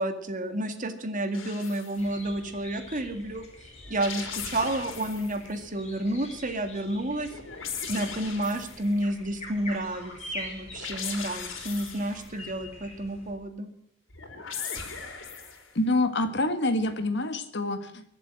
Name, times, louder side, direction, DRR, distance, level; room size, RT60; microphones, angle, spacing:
voice 1, 0.0-3.4 3.9-7.3 7.9-13.7, right 1 dB, 45° right, 7 dB, 2.0 m, -30 dB
sound 1, 1.3-2.0 3.8-5.4 7.2-8.9 10.7-12.3 14.1-15.7, left 6 dB, 85° left, 3.5 m, -38 dB
sound 2, 2.0-13.3, left 1 dB, 35° left, 5.3 m, -45 dB
voice 2, 15.8-18.2, left 2 dB, 60° left, 9 dB, 1.8 m, -27 dB
22.5 x 7.7 x 7.5 m, 0.72 s
head